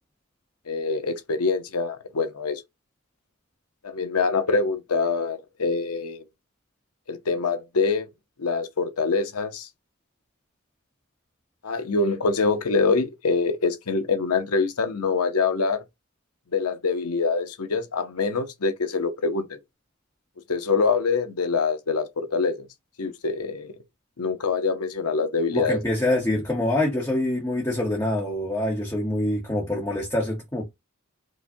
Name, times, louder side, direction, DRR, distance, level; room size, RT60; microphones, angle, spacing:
voice 1, 0.7-2.6 3.8-6.2 7.1-8.1 8.4-9.7 11.6-15.8 16.5-19.6 20.5-22.7 23.0-23.7 24.2-25.8, left 4 dB, 85° left, 0.8 m, -25 dB
voice 2, 25.5-30.6, left 1 dB, 15° left, 0.9 m, -25 dB
4.9 x 2.2 x 2.7 m
head